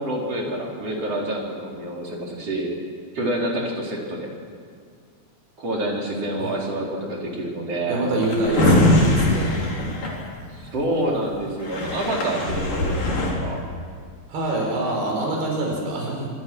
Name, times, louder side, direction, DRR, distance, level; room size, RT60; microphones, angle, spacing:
voice 1, 0.0-2.7 3.1-4.3 5.6-8.0 10.5-13.6, right 1 dB, 40° right, -2 dB, 5.1 m, -27 dB
voice 2, 7.9-9.6 14.3-16.3, right 2 dB, 90° right, -1 dB, 6.9 m, -25 dB
Drawer open or close, 8.1-10.8 11.3-11.4 11.6-13.3, left 1 dB, 55° left, 5.6 m, -21 dB
26.5 x 25.5 x 6.3 m, 2.1 s
omnidirectional pair, 4.4 m